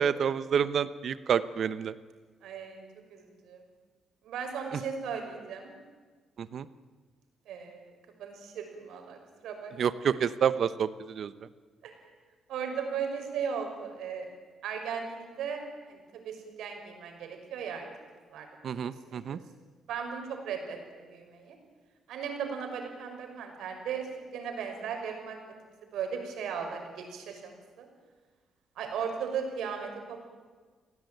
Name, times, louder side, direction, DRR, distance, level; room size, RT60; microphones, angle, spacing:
voice 1, 0.0-1.9 6.4-6.6 9.8-11.3 18.6-19.4, right 7 dB, 50° right, 14 dB, 0.9 m, -28 dB
voice 2, 2.4-2.8 3.1-3.6 4.2-5.7 7.5-7.9 8.2-9.7 10.1-10.2 11.8-11.9 12.5-14.3 14.6-17.8 18.3-19.4 19.9-21.5 22.1-24.1 24.3-25.4 25.9-27.9 28.8-30.3, right 6 dB, 80° right, 4 dB, 6.0 m, -37 dB
28.5 x 17.5 x 9.4 m, 1.5 s
cardioid pair, 155°, 0 cm